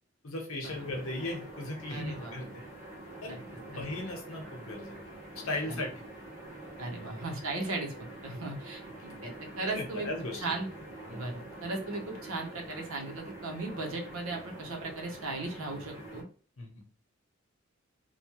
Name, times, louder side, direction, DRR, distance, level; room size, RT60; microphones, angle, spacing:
voice 1, 0.2-2.6 3.2-3.4 3.7-5.0 5.4-5.9 9.6-10.4 11.1-11.2 16.6-16.8, left 2 dB, 80° left, 3 dB, 0.9 m, -37 dB
sound 1, 0.6-16.2, right 2 dB, 35° right, 1.4 m, -46 dB
voice 2, 1.9-2.4 3.3-3.4 3.7-3.8 5.7-5.8 6.8-7.9 8.2-10.1 10.4-10.7 11.1-16.2, right 2 dB, 80° right, 1 dB, 0.9 m, -37 dB
3.0 x 2.2 x 2.9 m, 0.38 s
head